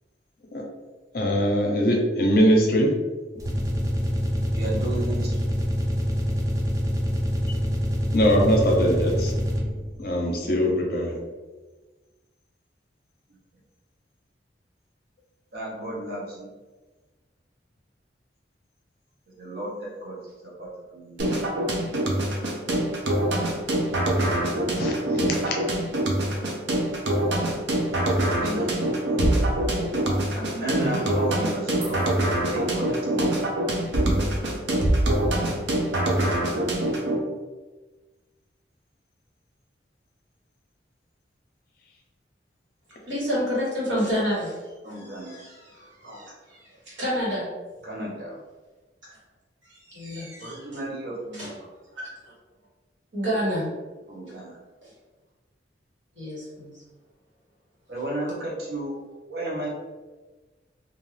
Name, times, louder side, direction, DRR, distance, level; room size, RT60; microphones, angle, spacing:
voice 1, 1.1-2.9 8.1-9.3 10.0-11.2 24.8-25.5, equal, 50° left, 0 dB, 0.6 m, -22 dB
sound 1, 3.3-9.9, equal, 20° right, 0.3 m, -25 dB
voice 2, 4.5-5.4 15.5-16.5 19.4-21.4 28.1-29.4 30.3-32.0 32.4-33.4 44.8-45.4 47.8-48.4 50.4-51.6 54.1-54.6 57.9-59.0 59.2-59.7, right 1 dB, 55° right, -4 dB, 0.8 m, -34 dB
sound 2, 21.2-37.2, right 1 dB, 75° right, 0.5 m, -24 dB
voice 3, 43.0-47.5 49.6-50.8 51.3-51.5 51.9-52.3 53.1-53.7 54.8-54.9 56.1-56.7, equal, 90° right, -7 dB, 1.4 m, -30 dB
2.5 x 2.4 x 3.2 m, 1.3 s
head